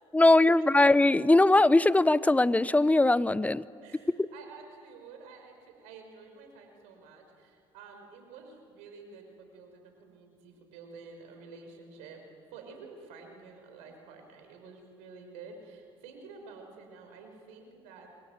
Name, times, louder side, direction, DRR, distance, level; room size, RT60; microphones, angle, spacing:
voice 1, 0.1-3.6, left 2 dB, 10° left, 17 dB, 0.8 m, -21 dB
voice 2, 3.8-12.2 12.5-18.1, right 4 dB, 80° right, 4 dB, 5.7 m, -50 dB
27.5 x 22.0 x 9.4 m, 2.3 s
supercardioid pair, 65°, 12 cm